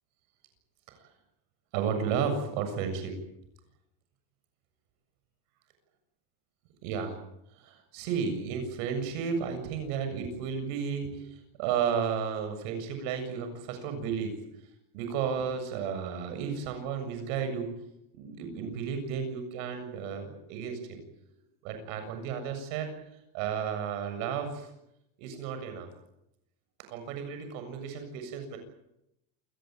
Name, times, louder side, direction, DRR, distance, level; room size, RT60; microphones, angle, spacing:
voice 1, 1.7-3.1 6.8-7.1 7.6-14.3 14.9-17.7 18.1-21.0 21.6-22.9 23.3-24.7 25.2-25.9 26.8-28.6, right 7 dB, 65° right, 7 dB, 7.4 m, -33 dB
28.5 x 18.0 x 9.0 m, 0.83 s
cardioid pair, 170°, 43 cm